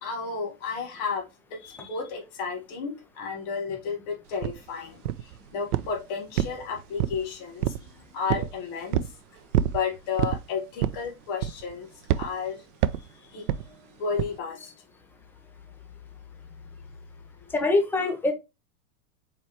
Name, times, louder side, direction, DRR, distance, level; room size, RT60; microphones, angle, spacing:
voice 1, 0.0-9.1 9.7-12.7 12.9-14.7 16.5-16.6, left 5 dB, 45° left, 1.7 m, -33 dB
sound 1, 4.4-4.6 5.1-5.4 5.7-6.0 6.4-7.3 7.6-7.9 8.3-8.5 8.9-9.2 9.5-9.8 10.2-10.4 10.8-11.1 11.4-11.7 12.1-12.3 12.8-13.1 13.5-13.7 14.2-14.4, right 12 dB, 75° right, 0.6 m, -26 dB
voice 2, 17.5-18.3, left 2 dB, 5° left, 0.8 m, -23 dB
4.4 x 4.0 x 3.0 m
hypercardioid pair, 120°, 46 cm